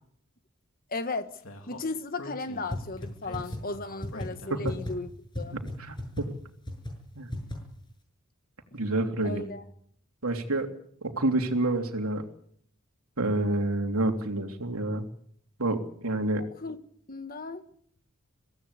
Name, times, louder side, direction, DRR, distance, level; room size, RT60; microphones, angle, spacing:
voice 1, 0.9-1.4 1.7-5.1 5.3-5.6 9.2-9.6 16.6-16.8 17.1-17.6, left 3 dB, 40° left, 1.5 m, -35 dB
Speech, 1.4-4.8, left 1 dB, 70° left, 3.1 m, -46 dB
sound 1, 2.7-2.8 3.0-3.1 3.3-3.6 4.0-4.3 4.7-4.9 5.3-5.4 5.7-5.8 6.0-6.2 6.7-6.9 7.3-7.5, left 1 dB, 20° left, 6.9 m, -33 dB
voice 2, 5.5-6.3 7.1-7.3 8.7-9.5 10.2-10.7 11.0-12.2 13.2-15.0 15.6-16.4, right 2 dB, 80° right, 3.2 m, -28 dB
24.0 x 17.0 x 8.3 m
head